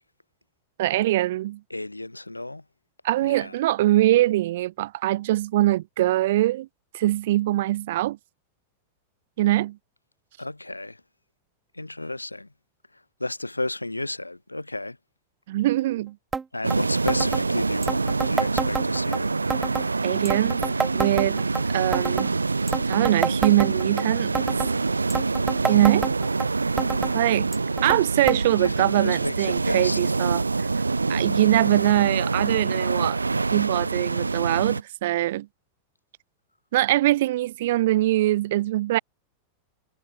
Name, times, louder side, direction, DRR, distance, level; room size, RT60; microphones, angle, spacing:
voice 1, 0.8-1.6 3.0-6.7 6.9-8.2 9.4-9.8 15.5-16.2 20.0-20.6 20.9-21.4 21.7-22.4 22.9-24.4 25.7-26.1 27.1-27.5 27.8-30.7 31.1-33.2 33.5-35.5 36.7-39.0, right 15 dB, 55° right, 2.4 m, -22 dB
voice 2, 1.7-2.6 3.2-3.6 10.4-11.0 11.7-12.5 13.2-15.0 16.5-19.4 28.6-30.1, left 2 dB, 85° left, 2.3 m, -32 dB
sound 1, 16.3-16.4 16.7-16.8 17.1-17.4 17.8-19.2 19.5-19.9 20.3-21.6 21.9-22.3 22.7-24.0 24.4-24.7 25.1-26.5 26.8-27.1 27.5-28.0 28.3-28.4 28.7-28.8 29.5-29.6 30.4-30.5, right 5 dB, 15° right, 1.0 m, -28 dB
sound 2, 16.6-34.8, right 3 dB, 80° right, 1.1 m, -26 dB
figure-of-eight pair, 90°, 0 cm